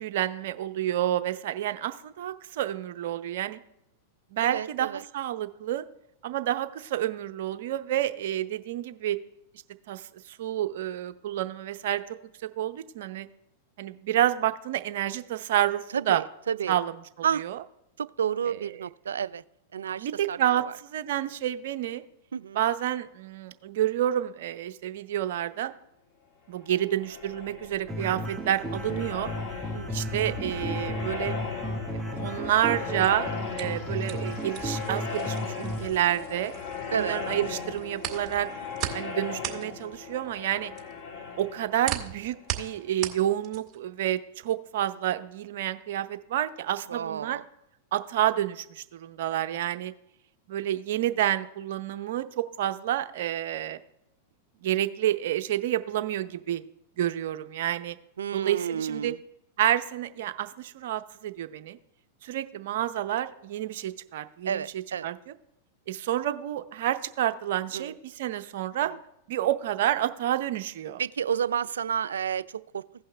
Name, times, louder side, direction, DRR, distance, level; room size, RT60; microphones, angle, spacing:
voice 1, 0.0-3.6 4.3-4.9 5.1-5.8 6.2-9.2 9.9-12.0 12.4-13.3 13.8-16.2 16.7-16.9 17.4-17.6 18.5-18.6 20.0-22.0 22.5-25.7 26.5-29.3 29.9-31.3 32.2-33.3 33.6-36.5 37.0-38.5 38.9-40.7 41.4-47.4 47.9-49.9 50.5-53.8 54.6-56.6 57.0-58.0 58.3-59.1 59.6-61.8 62.2-64.6 65.0-65.2 65.9-68.9 69.3-71.0, right 12 dB, 65° right, 9 dB, 0.7 m, -29 dB
voice 2, 4.4-5.0 15.9-16.8 17.2-17.4 18.0-19.4 19.7-20.7 22.3-22.6 29.7-29.9 36.9-37.2 46.8-47.4 58.2-59.2 64.5-65.1 67.7-67.9 68.8-69.0 71.0-72.8, right 8 dB, 85° right, 18 dB, 0.3 m, -31 dB
sound 1, 26.7-43.3, left 5 dB, 55° left, 2.3 m, -38 dB
sound 2, 27.9-35.9, right 1 dB, 5° right, 1.4 m, -34 dB
sound 3, 33.0-37.0 37.3-43.9, right 12 dB, 30° right, 1.9 m, -37 dB
16.0 x 5.5 x 3.3 m, 0.82 s
hypercardioid pair, 105°, 0 cm